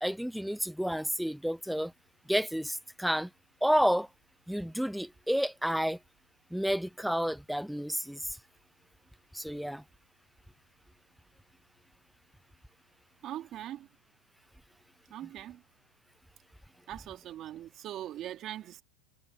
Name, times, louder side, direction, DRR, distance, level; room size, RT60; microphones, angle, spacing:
voice 1, 0.0-1.9 2.3-3.3 3.6-4.1 4.5-6.0 6.5-8.2 9.3-9.8, equal, ahead, 0.8 m, -30 dB
voice 2, 13.2-13.9 15.1-15.6 16.9-18.8, right 12 dB, 40° right, 3.3 m, -41 dB
hypercardioid pair, 105°, 0 cm